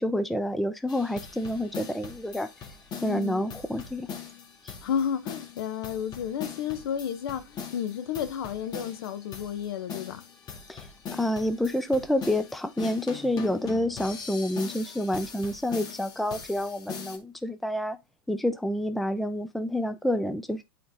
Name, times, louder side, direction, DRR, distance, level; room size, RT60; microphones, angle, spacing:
voice 1, 0.0-2.5 3.0-4.1 4.6-4.7 10.7-10.9 11.1-18.0 18.3-20.6, left 1 dB, ahead, 0.6 m, -28 dB
sound 1, 0.9-17.2, left 6 dB, 30° left, 2.0 m, -41 dB
voice 2, 3.0-3.4 4.8-10.2, left 8 dB, 70° left, 1.3 m, -32 dB
8.6 x 4.4 x 3.8 m
hypercardioid pair, 115°, 14 cm